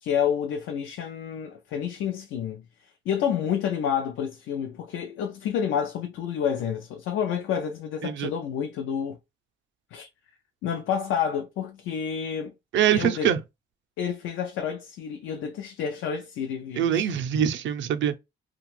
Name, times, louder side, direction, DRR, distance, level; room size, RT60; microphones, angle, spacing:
voice 1, 0.0-9.2 9.9-10.1 10.6-12.5 12.9-13.3 14.0-17.1, left 8 dB, 80° left, 0.4 m, -29 dB
voice 2, 12.7-13.4 16.8-18.2, right 9 dB, 70° right, 0.5 m, -24 dB
2.5 x 2.3 x 3.1 m
cardioid pair, 90°, 20 cm